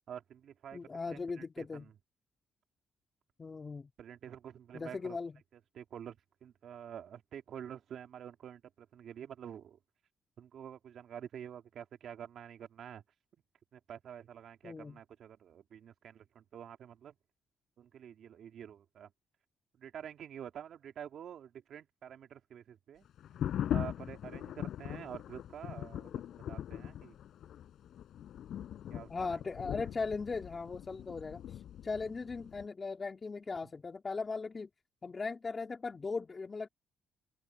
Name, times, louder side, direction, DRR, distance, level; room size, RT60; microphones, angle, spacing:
voice 1, 0.0-0.8 1.1-1.9 4.0-5.2 5.5-9.8 10.4-13.0 13.7-17.1 17.8-19.1 19.8-23.1 23.7-27.1 28.9-29.4 29.8-29.9, right 9 dB, 65° right, 2.6 m, -48 dB
voice 2, 0.7-1.9 3.4-3.9 4.7-5.3 14.6-15.0 29.1-34.7 35.0-36.7, left 4 dB, 30° left, 3.1 m, -38 dB
sound 1, 23.2-32.6, left 10 dB, 70° left, 4.9 m, -41 dB
open air
cardioid pair, 90°, 0 cm